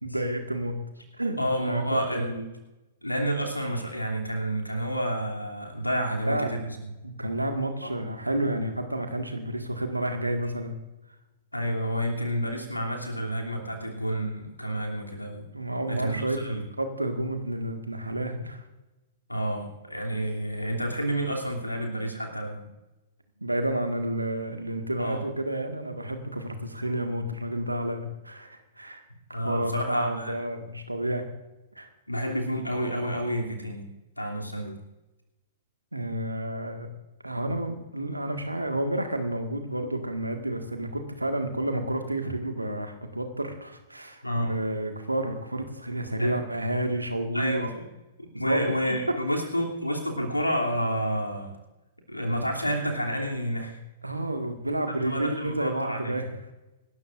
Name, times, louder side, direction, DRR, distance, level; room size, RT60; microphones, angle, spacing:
voice 1, 0.0-0.8 1.2-1.8 2.1-2.3 6.3-6.5 7.0-10.8 15.5-16.4 16.8-18.6 23.4-29.0 29.3-31.3 31.8-31.9 35.9-36.9 37.2-47.5 48.3-48.8 49.1-49.2 54.0-56.5, right 1 dB, 85° right, 5 dB, 1.8 m, -30 dB
voice 2, 1.4-2.4 3.0-6.9 7.8-7.9 11.5-15.5 15.9-16.6 19.3-22.7 25.0-25.2 29.3-30.4 32.1-33.8 34.2-34.8 44.2-44.6 46.2-46.4 47.3-47.9 48.2-51.5 52.1-53.8 55.0-56.2, equal, 85° left, 1 dB, 3.0 m, -29 dB
26.0 x 13.0 x 2.6 m, 1.0 s
figure-of-eight pair, 105°, 0 cm